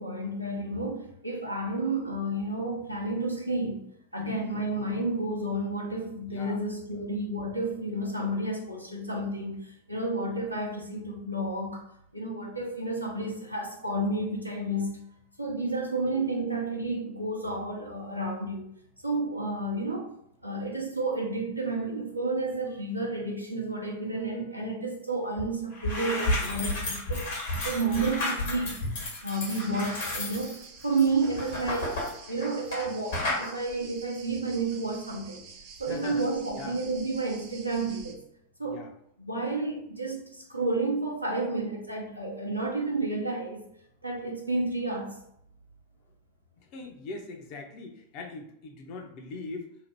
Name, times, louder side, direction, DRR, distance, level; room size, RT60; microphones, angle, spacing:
voice 1, 0.0-3.9 4.1-11.8 12.1-15.0 15.4-18.7 19.0-20.1 20.4-27.3 27.6-28.8 29.2-31.9 32.3-35.4 35.8-38.2 38.6-38.8 39.2-43.6 44.0-45.2, right 2 dB, 90° right, -1 dB, 0.6 m, -31 dB
voice 2, 4.2-4.7 6.3-6.6 15.7-15.9 29.3-29.5 35.8-36.2 36.5-36.8 38.6-38.9 46.6-49.7, left 3 dB, 40° left, 2 dB, 0.5 m, -41 dB
sound 1, 25.4-25.5 25.7-32.9 33.1-33.5, left 1 dB, 60° left, 0.9 m, -32 dB
sound 2, 29.3-38.1, right 6 dB, 45° right, 0.5 m, -49 dB
2.7 x 2.1 x 3.2 m, 0.73 s
figure-of-eight pair, 90°, 0 cm